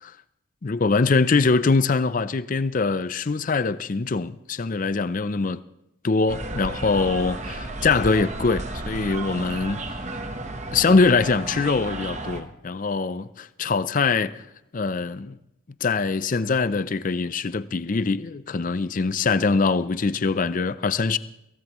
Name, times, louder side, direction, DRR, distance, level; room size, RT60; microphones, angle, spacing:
voice 1, 0.6-5.6 6.0-10.1 10.7-14.4 14.7-15.4 15.8-21.2, left 4 dB, 40° left, 0.5 m, -23 dB
sound 1, 6.3-12.4, right 2 dB, 35° right, 1.1 m, -33 dB
23.0 x 17.0 x 3.1 m
head